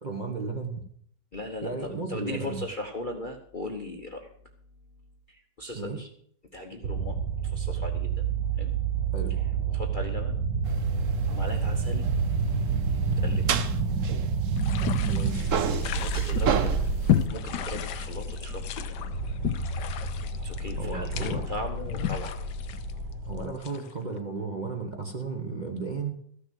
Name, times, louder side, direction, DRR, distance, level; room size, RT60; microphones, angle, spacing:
voice 1, 0.0-0.8 1.6-2.6 5.7-6.0 9.1-9.3 15.1-15.4 20.8-21.4 23.3-26.2, right 4 dB, 25° right, 3 dB, 1.2 m, -34 dB
voice 2, 1.3-4.3 5.3-6.1 6.5-8.3 8.5-8.7 9.3-10.4 11.3-12.1 13.2-13.5 15.9-16.8 17.3-18.7 20.4-22.4, left 2 dB, 35° left, 3 dB, 1.0 m, -38 dB
sound 1, 6.8-23.4, right 4 dB, 75° right, 1.7 m, -29 dB
sound 2, 10.6-14.9 15.1-17.2, right 8 dB, 55° right, 0.9 m, -33 dB
sound 3, 14.6-24.1, left 10 dB, 70° left, 1.3 m, -33 dB
14.0 x 6.5 x 7.7 m, 0.64 s
omnidirectional pair, 2.0 m